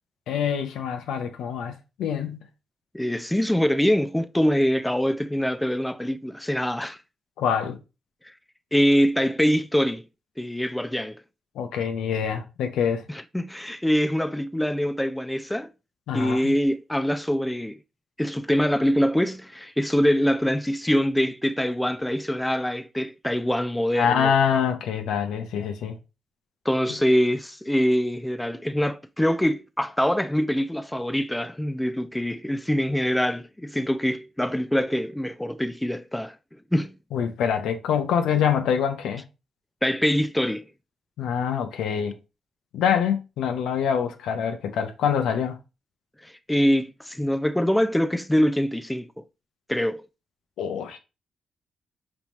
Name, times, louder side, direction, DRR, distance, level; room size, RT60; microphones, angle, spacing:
voice 1, 0.3-2.5 7.4-7.8 11.5-13.0 16.1-16.6 24.0-26.0 26.9-27.0 37.1-39.3 41.2-42.2 42.7-45.6 50.6-51.0, left 8 dB, 80° left, 0.6 m, -25 dB
voice 2, 2.9-7.0 8.7-10.0 10.4-11.2 13.1-15.7 16.1-17.8 18.2-24.3 26.7-36.3 36.7-36.9 39.8-40.6 46.2-49.2 49.7-50.0, equal, 10° left, 0.4 m, -24 dB
5.3 x 2.9 x 3.0 m
supercardioid pair, 55°, 0 cm